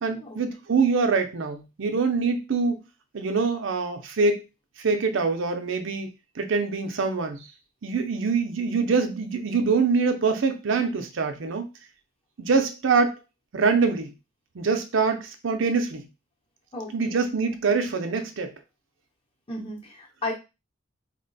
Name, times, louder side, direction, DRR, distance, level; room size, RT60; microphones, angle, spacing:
voice 1, 0.0-2.8 3.1-4.4 4.8-6.1 6.4-7.5 7.8-11.7 12.4-13.2 13.5-14.1 14.5-16.1 16.9-18.5, right 4 dB, 70° right, 6 dB, 0.5 m, -24 dB
voice 2, 16.7-17.3 19.5-20.3, left 1 dB, 25° left, -1 dB, 0.8 m, -34 dB
2.9 x 2.2 x 3.9 m, 0.27 s
head